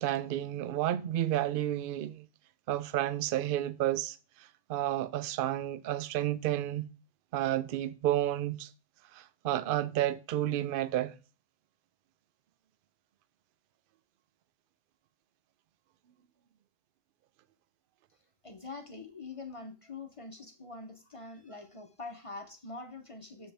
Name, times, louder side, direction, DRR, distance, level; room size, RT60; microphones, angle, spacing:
voice 1, 0.0-2.2 2.7-4.2 4.7-6.8 7.3-8.7 9.1-11.1, right 13 dB, 75° right, 0.5 m, -31 dB
voice 2, 18.4-23.5, left 3 dB, 30° left, 0.6 m, -44 dB
7.5 x 7.1 x 3.4 m
omnidirectional pair, 1.5 m